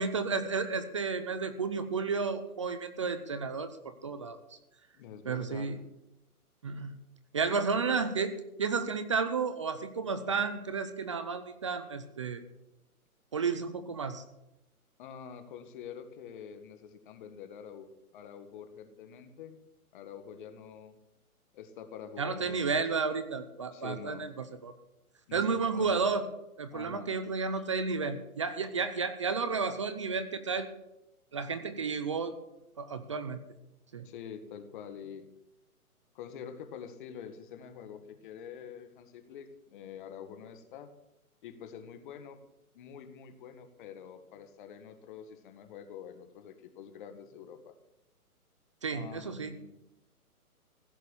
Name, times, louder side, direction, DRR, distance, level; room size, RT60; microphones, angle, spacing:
voice 1, 0.0-3.8 4.0-4.4 5.3-5.8 6.6-7.0 7.3-12.4 13.3-14.2 22.2-24.7 25.3-26.3 26.6-30.7 31.3-32.4 32.8-33.4 33.9-34.1 48.8-49.5, right 5 dB, 20° right, 11 dB, 0.5 m, -32 dB
voice 2, 4.9-5.7 7.7-7.9 10.3-10.4 15.0-19.6 19.9-20.9 21.5-22.6 23.7-24.3 25.3-25.9 26.7-27.2 34.0-35.3 36.1-40.9 41.4-42.4 42.7-47.7 48.9-49.8, left 8 dB, 35° left, 9 dB, 1.7 m, -46 dB
15.5 x 6.6 x 9.8 m, 0.89 s
hypercardioid pair, 145°, 45 cm